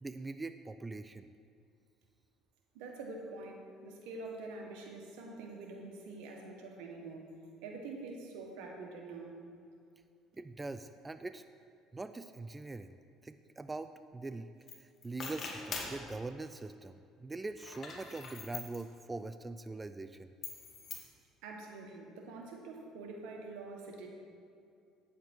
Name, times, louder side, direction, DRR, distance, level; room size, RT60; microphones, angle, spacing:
voice 1, 0.0-1.3 10.3-11.4 11.9-13.0 13.2-14.5 14.8-20.3, right 3 dB, 15° right, 10 dB, 0.3 m, -43 dB
voice 2, 2.7-7.3 7.6-9.3 21.4-24.1, right 3 dB, 85° right, 1 dB, 1.5 m, -46 dB
sound 1, 14.7-14.8 15.0-16.0 17.5-18.8 20.4-21.0, left 4 dB, 45° left, 1.5 m, -43 dB
9.4 x 7.3 x 4.5 m, 2.5 s
supercardioid pair, 100°, 0 cm